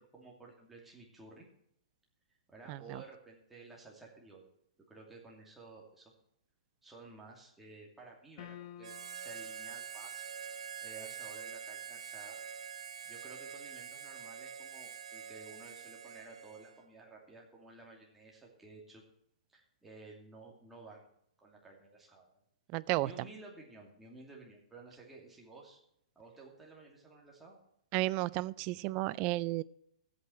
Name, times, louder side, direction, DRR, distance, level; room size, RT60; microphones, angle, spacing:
voice 1, 0.0-1.5 2.5-4.4 4.9-6.1 6.8-10.3 10.8-12.4 13.0-19.0 19.5-21.1 21.4-22.4 23.0-25.8 26.2-27.6, right 3 dB, 5° right, -2 dB, 2.6 m, -54 dB
voice 2, 2.7-3.0 22.7-23.1 27.9-29.6, right 19 dB, 30° right, 20 dB, 0.3 m, -33 dB
sound 1, 8.4-9.4, left 11 dB, 50° left, 1.1 m, -49 dB
Harmonica, 8.8-16.9, right 7 dB, 80° right, 1.0 m, -45 dB
14.0 x 8.5 x 4.5 m, 0.74 s
hypercardioid pair, 155°, 3 cm